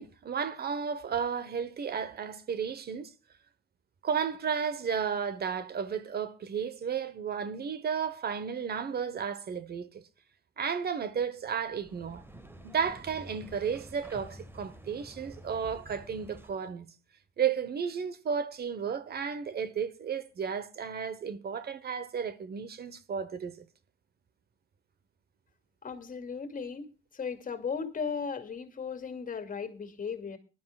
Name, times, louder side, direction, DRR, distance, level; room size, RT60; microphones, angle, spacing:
voice 1, 0.0-3.1 4.0-10.0 10.6-12.2 12.6-16.9 17.4-23.6, right 7 dB, 55° right, 1.2 m, -33 dB
sound 1, 11.6-16.7, right 1 dB, 10° right, 1.6 m, -49 dB
voice 2, 25.8-26.9 27.1-30.4, left 6 dB, 45° left, 2.5 m, -36 dB
21.0 x 11.5 x 2.4 m
cardioid pair, 90°, 20 cm